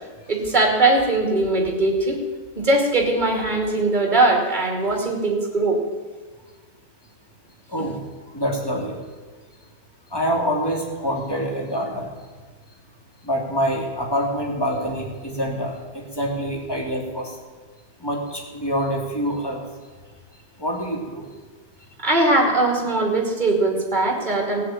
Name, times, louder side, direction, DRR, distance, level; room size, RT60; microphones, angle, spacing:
voice 1, 0.3-2.2 2.6-5.8 22.0-24.6, right 2 dB, 20° right, 1 dB, 2.7 m, -20 dB
voice 2, 8.3-9.0 10.1-12.1 13.2-17.4 18.0-19.6 20.6-21.3, equal, 10° left, -1 dB, 2.4 m, -26 dB
17.5 x 6.6 x 8.8 m, 1.5 s
omnidirectional pair, 2.4 m